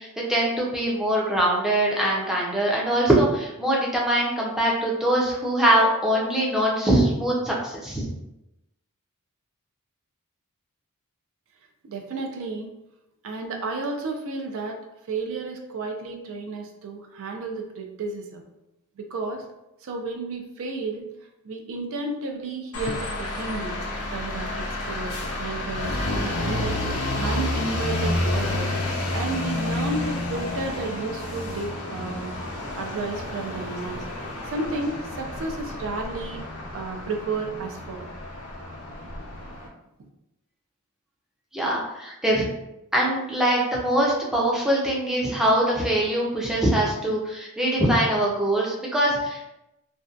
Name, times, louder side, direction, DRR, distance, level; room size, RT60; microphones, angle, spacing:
voice 1, 0.0-8.1 41.5-42.5 42.9-49.5, right 1 dB, ahead, -4 dB, 0.5 m, -23 dB
voice 2, 11.8-12.7 13.2-14.8 15.1-18.4 19.0-19.5 19.8-21.1 21.4-23.9 24.1-28.7 29.1-32.3 32.7-34.1 34.5-36.4 36.7-38.1 40.0-40.1, right 3 dB, 65° right, 3 dB, 0.4 m, -32 dB
sound 1, 22.7-39.7, left 2 dB, 80° left, 0.6 m, -30 dB
2.6 x 2.1 x 2.4 m, 0.90 s
head